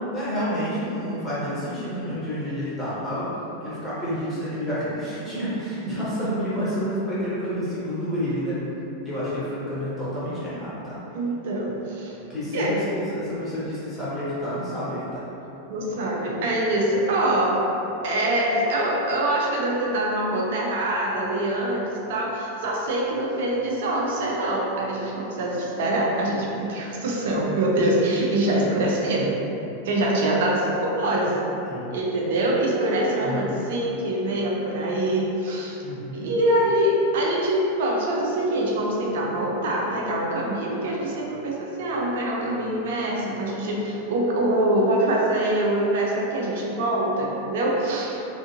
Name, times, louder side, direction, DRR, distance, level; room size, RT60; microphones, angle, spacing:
voice 1, 0.1-3.3 3.6-8.6 9.0-11.0 12.3-15.2 31.6-31.8 33.2-33.5 35.8-36.3, equal, ahead, -13 dB, 1.4 m, -29 dB
voice 2, 11.1-12.1 12.5-12.7 15.7-17.6 18.0-21.8 22.1-29.4 29.8-31.3 31.9-35.8 36.2-48.2, right 1 dB, 55° right, -2 dB, 0.5 m, -24 dB
3.6 x 2.6 x 2.6 m, 3.0 s
figure-of-eight pair, 90°, 0 cm